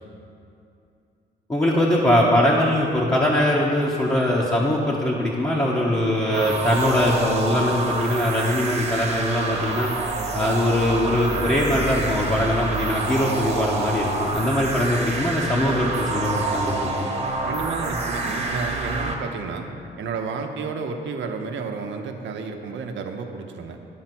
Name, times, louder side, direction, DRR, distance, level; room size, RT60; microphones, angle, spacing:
voice 1, 1.5-9.9 10.3-17.1, left 1 dB, 15° left, -5 dB, 1.1 m, -22 dB
sound 1, 6.3-19.1, right 2 dB, 35° right, 1.3 m, -27 dB
voice 2, 17.4-19.7 20.0-23.8, right 5 dB, 70° right, 4 dB, 0.8 m, -31 dB
11.0 x 4.3 x 6.0 m, 2.6 s
cardioid pair, 90°, 20 cm